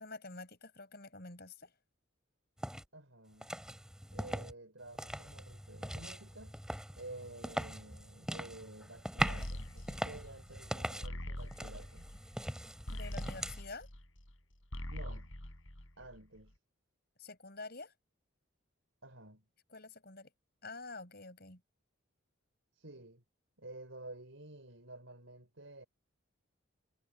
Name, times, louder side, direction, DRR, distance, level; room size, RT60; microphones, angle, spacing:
voice 1, 0.0-1.7 12.9-13.9 17.2-17.9 19.7-20.3 20.6-21.6, left 3 dB, 50° left, 6.9 m, -48 dB
sound 1, 2.6-2.8 3.4-4.5 4.9-11.1 11.5-13.6, equal, 5° right, 3.6 m, -41 dB
voice 2, 2.9-3.5 4.1-6.6 7.0-12.1 14.9-15.3 16.0-16.5 19.0-19.4 22.8-23.2 23.6-25.9, right 2 dB, 70° right, 5.3 m, -51 dB
sound 2, 9.2-14.4 14.6-16.4, left 1 dB, 70° left, 4.9 m, -43 dB
head